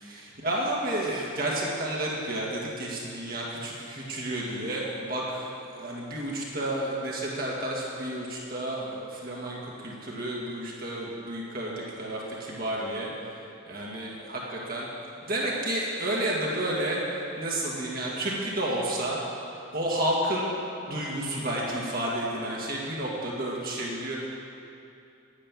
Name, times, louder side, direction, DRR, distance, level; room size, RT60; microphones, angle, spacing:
voice 1, 0.0-5.5 5.8-13.1 13.7-14.9 15.2-17.0 17.4-19.2 19.7-20.5 20.9-24.2, right 1 dB, 45° right, -4 dB, 2.0 m, -31 dB
10.0 x 10.0 x 7.4 m, 2.7 s
head